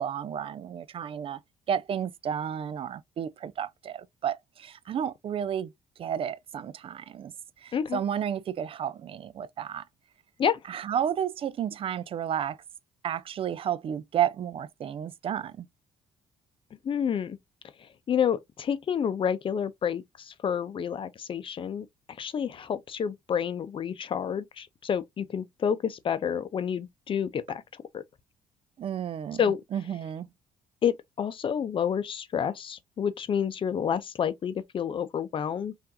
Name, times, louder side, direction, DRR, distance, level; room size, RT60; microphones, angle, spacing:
voice 1, 0.0-1.4 1.7-5.7 6.0-7.3 7.6-9.8 10.7-12.6 13.0-15.7 28.8-29.4 29.7-30.3, right 9 dB, 45° right, 0.4 m, -32 dB
voice 2, 16.8-17.4 18.1-21.9 22.2-27.6 27.9-28.0 29.4-29.6 30.8-35.7, left 8 dB, 45° left, 0.6 m, -29 dB
4.6 x 2.6 x 2.6 m
supercardioid pair, 75°, 13 cm